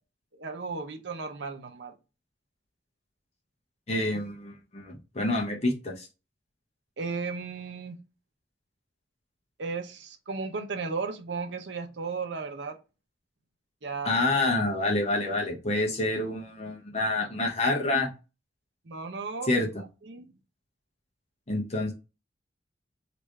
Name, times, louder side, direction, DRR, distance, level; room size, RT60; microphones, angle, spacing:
voice 1, 0.3-1.9 7.0-8.0 9.6-12.8 13.8-14.2 18.9-19.5 20.0-20.3, right 4 dB, 70° right, 0.7 m, -35 dB
voice 2, 3.9-6.1 14.0-18.1 19.5-19.8 21.5-21.9, left 2 dB, 35° left, 0.8 m, -27 dB
3.4 x 2.5 x 3.2 m
head